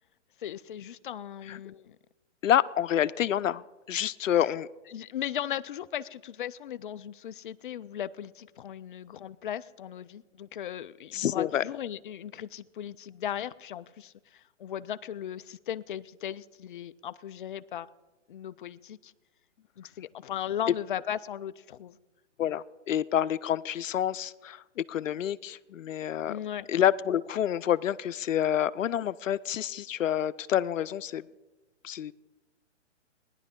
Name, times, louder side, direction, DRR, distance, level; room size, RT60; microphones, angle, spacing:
voice 1, 0.4-2.0 4.4-4.6 4.9-17.9 18.3-19.1 19.8-22.0 26.3-26.7, left 10 dB, 45° left, 15 dB, 0.4 m, -37 dB
voice 2, 2.4-3.6 3.9-4.7 11.1-11.6 22.4-24.6 24.9-26.3 26.7-31.2 31.8-32.1, left 10 dB, 90° left, 17 dB, 0.6 m, -28 dB
19.0 x 10.5 x 3.6 m, 1.1 s
hypercardioid pair, 150°, 37 cm